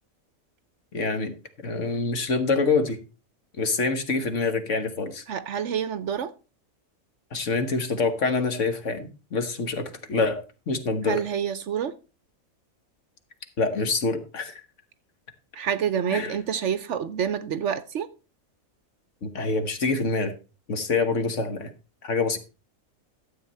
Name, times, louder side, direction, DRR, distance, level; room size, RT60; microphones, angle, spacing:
voice 1, 0.9-1.3 1.6-3.0 3.6-5.2 7.3-11.2 13.6-14.6 16.1-16.4 19.2-20.3 20.7-21.7 22.0-22.4, left 4 dB, 60° left, 1.7 m, -26 dB
voice 2, 5.3-6.3 11.1-11.9 15.5-18.1, right 8 dB, 65° right, 1.0 m, -27 dB
12.5 x 7.7 x 4.3 m
omnidirectional pair, 1.5 m